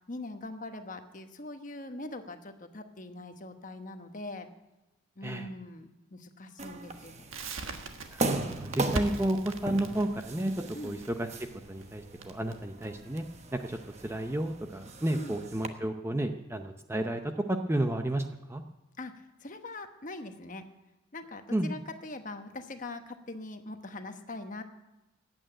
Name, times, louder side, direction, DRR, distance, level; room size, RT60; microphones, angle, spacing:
voice 1, 0.1-4.5 5.2-7.3 10.7-11.0 15.1-15.4 19.0-20.6 21.1-24.6, left 2 dB, 40° left, 7 dB, 1.1 m, -42 dB
sound 1, 6.6-15.7, right 2 dB, 30° right, 1.1 m, -38 dB
Crackle, 7.3-14.1, right 3 dB, 75° right, 1.5 m, -40 dB
voice 2, 8.1-10.5 10.8-11.3 11.7-13.2 13.5-13.8 14.0-18.6 21.5-21.8, right 1 dB, 10° right, 6 dB, 0.6 m, -31 dB
15.5 x 8.9 x 8.9 m, 1.0 s
head